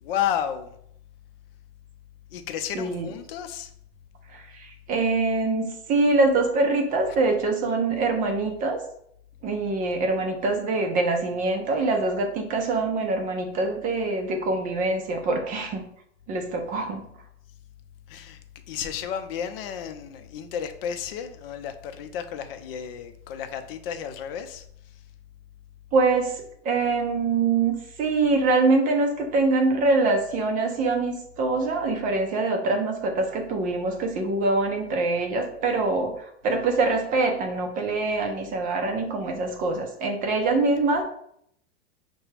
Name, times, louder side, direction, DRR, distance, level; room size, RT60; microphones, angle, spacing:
voice 1, 0.0-0.8 2.3-3.7 18.1-18.4 18.7-24.6, left 9 dB, 60° left, 8 dB, 0.6 m, -32 dB
voice 2, 2.7-3.1 4.3-8.8 9.4-15.8 16.3-17.0 25.9-41.0, right 3 dB, 25° right, 4 dB, 0.6 m, -24 dB
5.8 x 2.2 x 3.2 m, 0.69 s
supercardioid pair, 135°, 33 cm